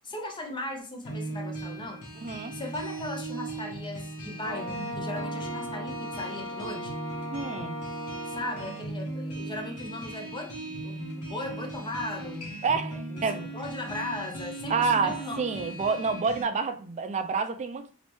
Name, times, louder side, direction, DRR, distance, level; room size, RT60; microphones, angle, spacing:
voice 1, 0.0-2.0 2.5-7.0 8.3-15.7, left 2 dB, 20° left, 0.6 m, -38 dB
sound 1, 1.1-16.4, right 2 dB, 85° left, 1.2 m, -38 dB
voice 2, 2.2-2.5 7.3-7.8 12.6-13.5 14.7-17.9, right 5 dB, 30° right, 0.3 m, -28 dB
Wind instrument woodwind instrument, 4.4-8.9, left 1 dB, 55° left, 1.0 m, -38 dB
3.1 x 3.0 x 3.0 m
head